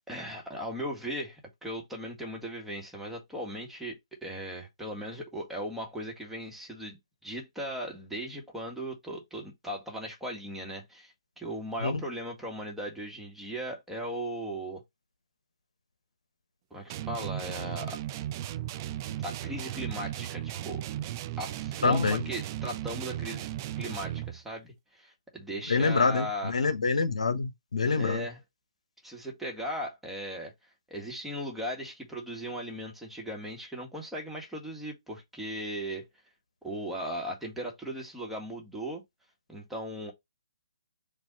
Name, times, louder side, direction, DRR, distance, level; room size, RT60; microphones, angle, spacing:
voice 1, 0.1-14.8 16.7-18.0 19.2-20.8 21.4-26.7 28.0-28.4 29.0-30.5 30.9-36.1 36.6-39.0 39.5-40.1, equal, 5° right, 1.4 m, -38 dB
sound 1, 16.9-24.4, right 12 dB, 30° right, 0.4 m, -36 dB
voice 2, 21.8-22.2 25.7-28.3, left 4 dB, 75° left, 1.0 m, -26 dB
5.0 x 2.6 x 4.0 m
figure-of-eight pair, 140°, 4 cm